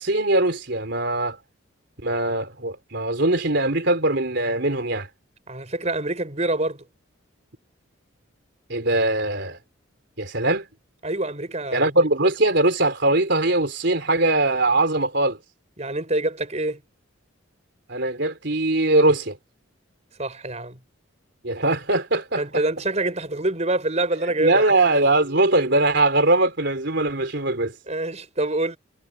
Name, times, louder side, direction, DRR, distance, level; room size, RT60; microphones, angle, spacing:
voice 1, 0.0-1.4 2.0-5.1 8.7-9.6 10.2-10.7 11.7-15.4 17.9-19.4 21.4-22.4 24.4-27.7, right 2 dB, 55° right, 4.0 m, -21 dB
voice 2, 5.5-6.8 11.0-11.9 15.8-16.8 20.2-20.8 22.4-24.6 27.9-28.8, right 2 dB, 35° right, 5.2 m, -26 dB
head